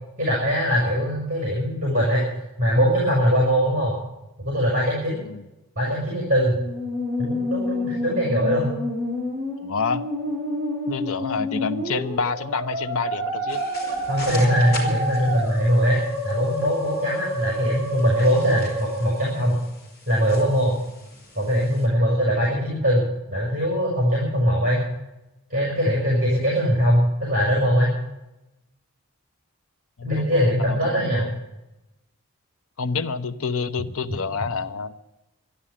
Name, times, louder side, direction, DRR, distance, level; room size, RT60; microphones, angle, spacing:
voice 1, 0.2-2.2 2.6-3.9 4.4-5.2 5.8-6.6 7.2-8.7 14.1-19.6 20.1-20.8 21.3-24.9 25.5-28.0 30.0-31.3, equal, 35° right, -3 dB, 5.7 m, -21 dB
Musical instrument, 6.6-19.6, equal, 15° right, 7.5 m, -29 dB
voice 2, 9.6-10.0 10.9-13.6 30.0-31.3 32.8-35.0, left 5 dB, 75° left, 11 dB, 0.8 m, -28 dB
sound 1, 13.5-21.9, left 1 dB, 45° left, 4.4 m, -41 dB
13.0 x 11.0 x 10.0 m, 0.95 s
head